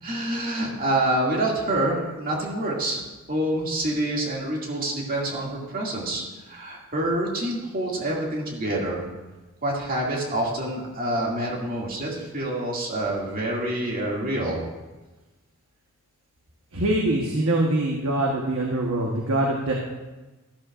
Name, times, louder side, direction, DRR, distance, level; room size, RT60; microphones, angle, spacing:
voice 1, 0.0-3.0 3.3-9.0 9.6-14.6, right 1 dB, 45° right, -3 dB, 2.4 m, -27 dB
voice 2, 16.7-19.7, right 1 dB, 75° right, -2 dB, 1.3 m, -23 dB
13.0 x 11.5 x 2.5 m, 1.2 s
head